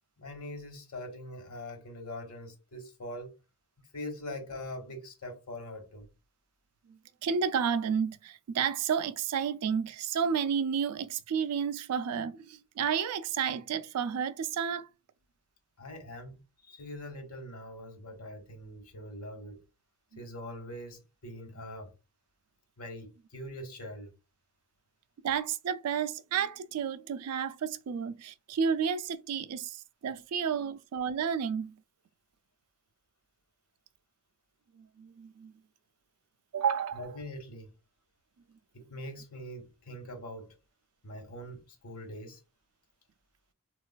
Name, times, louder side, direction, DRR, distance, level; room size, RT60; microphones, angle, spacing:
voice 1, 0.2-3.3 3.9-6.1 15.8-19.6 20.2-21.9 22.8-24.1 36.9-37.7 38.7-40.5 41.0-42.4, left 1 dB, 75° left, 1.0 m, -43 dB
voice 2, 7.2-14.9 25.2-31.8 34.8-35.5 36.5-37.0, right 7 dB, 85° right, 0.4 m, -31 dB
3.9 x 2.4 x 2.2 m
head